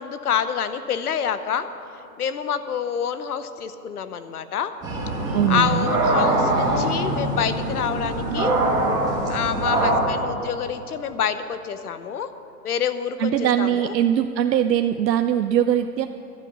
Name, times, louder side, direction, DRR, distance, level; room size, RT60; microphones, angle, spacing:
voice 1, 0.0-1.7 2.2-4.7 5.5-8.6 9.3-12.3 12.6-13.9, left 8 dB, 65° left, 11 dB, 0.9 m, -27 dB
sound 1, 4.8-10.0, right 2 dB, 5° right, 1.2 m, -23 dB
voice 2, 5.3-5.9 13.2-16.1, right 10 dB, 85° right, 8 dB, 0.7 m, -21 dB
12.0 x 9.1 x 8.2 m, 3.0 s
hypercardioid pair, 165°, 49 cm